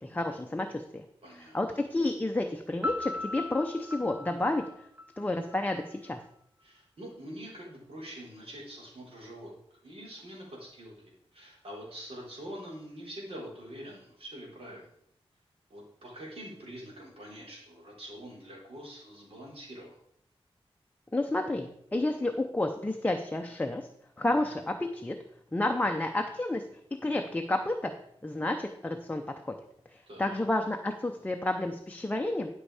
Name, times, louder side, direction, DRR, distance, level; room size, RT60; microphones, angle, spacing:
voice 1, 0.0-1.0 1.5-4.6 5.2-6.2 21.1-23.9 24.2-25.2 25.5-26.6 27.0-27.9 28.2-29.6 29.9-32.5, left 2 dB, 15° left, 4 dB, 0.7 m, -30 dB
voice 2, 1.2-1.8 6.6-14.9 15.7-20.0 30.1-30.4, equal, 65° right, -3 dB, 3.7 m, -45 dB
Piano, 2.8-5.6, left 2 dB, 15° right, 0.7 m, -37 dB
11.5 x 5.4 x 4.9 m, 0.71 s
wide cardioid pair, 125°, 10 cm